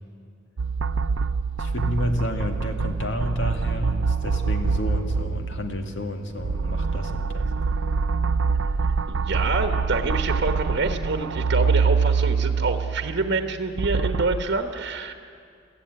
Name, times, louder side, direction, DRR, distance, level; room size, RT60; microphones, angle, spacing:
sound 1, 0.6-6.0 6.4-14.4, right 5 dB, 75° right, 0.5 m, -25 dB
voice 1, 1.6-7.5, left 1 dB, 65° left, 4 dB, 2.0 m, -30 dB
voice 2, 9.1-15.1, right 3 dB, 60° right, 6 dB, 1.1 m, -27 dB
21.0 x 14.5 x 9.3 m, 2.3 s
head